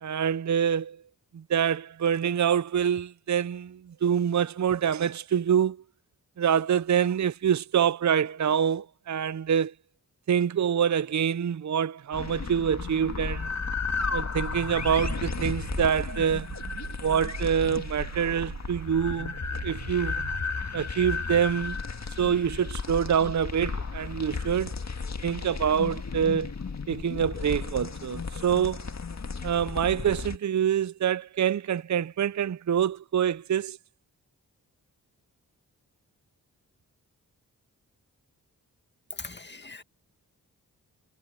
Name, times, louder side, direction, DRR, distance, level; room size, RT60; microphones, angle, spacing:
voice 1, 0.0-1.0 1.3-5.8 6.4-9.7 10.3-13.5 14.1-16.5 17.0-19.3 19.6-20.2 20.7-21.8 22.2-24.7 25.2-26.5 26.9-28.8 29.4-33.8, right 8 dB, 50° right, 0.7 m, -26 dB
sound 1, 12.1-30.4, left 5 dB, 45° left, 1.8 m, -34 dB
sound 2, 14.4-20.4, right 9 dB, 90° right, 1.0 m, -41 dB
voice 2, 39.2-39.8, left 3 dB, 30° left, 2.1 m, -41 dB
cardioid pair, 45°, 37 cm